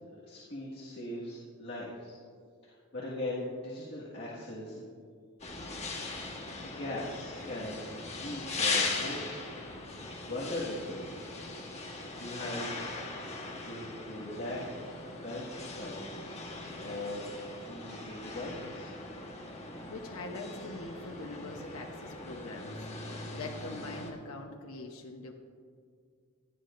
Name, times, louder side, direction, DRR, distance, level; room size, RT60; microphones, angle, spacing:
voice 1, 0.3-2.2 2.6-4.9 6.6-9.7 10.2-11.1 11.9-12.8 13.6-15.0 15.2-16.4 16.8-17.2 17.6-19.0, left 1 dB, 50° left, -6 dB, 1.7 m, -40 dB
sound 1, 5.4-24.1, left 3 dB, 30° left, 1.3 m, -39 dB
voice 2, 19.9-22.8 23.4-25.3, left 2 dB, 75° left, 2 dB, 0.9 m, -43 dB
17.0 x 11.0 x 2.5 m, 2.1 s
head